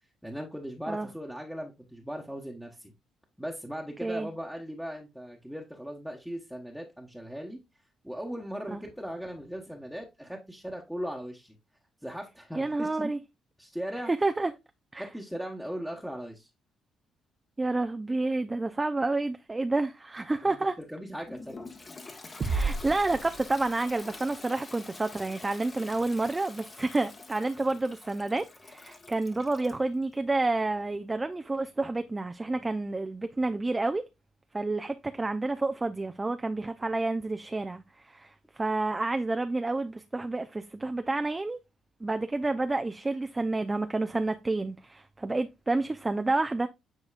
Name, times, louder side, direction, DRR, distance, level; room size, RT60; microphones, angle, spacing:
voice 1, 0.2-2.9 3.4-7.6 8.0-11.5 12.0-13.1 13.6-14.1 15.0-16.5 20.4-21.5, equal, ahead, 1.2 m, -38 dB
voice 2, 12.6-13.2 14.1-14.5 14.9-15.1 17.6-20.8 22.4-34.1 34.5-41.6 42.0-46.7, right 2 dB, 20° right, 0.5 m, -29 dB
Toilet flush, 21.3-29.8, left 3 dB, 30° left, 1.3 m, -47 dB
sound 1, 22.4-24.1, right 3 dB, 45° right, 1.1 m, -32 dB
9.9 x 4.1 x 2.4 m
cardioid pair, 90°, 0 cm